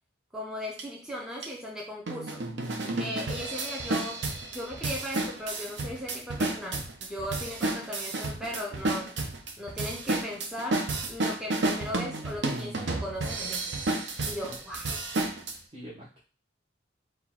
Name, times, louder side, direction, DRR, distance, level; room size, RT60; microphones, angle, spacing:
voice 1, 0.3-2.4 3.0-9.1 9.6-13.7 14.2-14.9, left 1 dB, 5° right, -2 dB, 0.5 m, -37 dB
sound 1, 0.8-0.9 1.4-1.5 2.1-15.5, right 2 dB, 65° right, 0.7 m, -31 dB
voice 2, 15.7-16.2, equal, 25° right, -7 dB, 0.9 m, -44 dB
4.3 x 2.2 x 4.2 m, 0.36 s
head